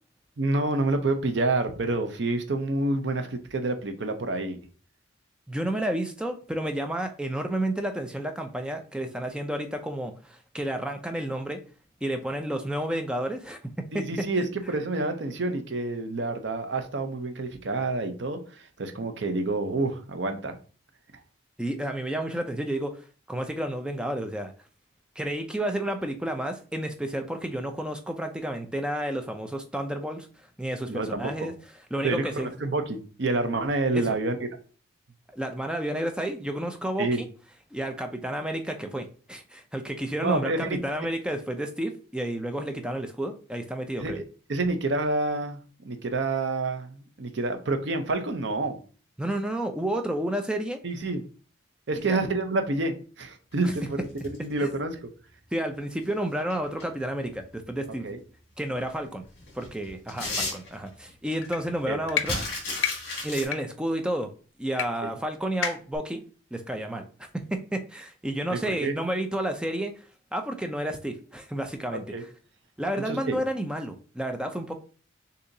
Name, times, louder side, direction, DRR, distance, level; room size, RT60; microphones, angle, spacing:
voice 1, 0.4-4.6 13.9-20.5 30.9-31.5 32.0-34.4 37.0-37.2 40.2-40.8 44.0-44.2 44.5-45.6 45.9-48.8 50.8-51.2 51.9-55.1 58.0-58.2 61.9-62.0 62.3-62.4 65.0-65.1 68.5-68.9 72.1-72.2 73.1-73.4, right 2 dB, 60° right, 7 dB, 0.6 m, -28 dB
voice 2, 5.5-11.6 12.0-14.3 21.6-24.5 25.2-30.3 30.6-31.5 31.9-32.5 33.9-34.2 35.3-37.2 37.7-44.2 49.2-50.8 52.0-52.2 53.6-53.7 54.6-54.7 55.5-58.1 58.6-59.2 59.5-62.4 63.2-64.3 64.6-66.2 66.5-67.0 67.5-70.0 70.3-72.0 72.8-74.7, right 1 dB, 5° right, 5 dB, 0.4 m, -31 dB
sound 1, 53.5-54.5 56.1-56.8 57.4-57.5 58.7-58.8 59.2-61.1 61.4-61.5 61.7-63.5, left 2 dB, 55° left, 2.2 m, -33 dB
sound 2, 61.4-61.6 62.1-62.3 62.8-62.9 63.4-63.6 64.8-64.9 65.1-65.2 65.6-66.0, left 8 dB, 70° left, 0.6 m, -28 dB
6.6 x 2.7 x 2.7 m, 0.39 s
head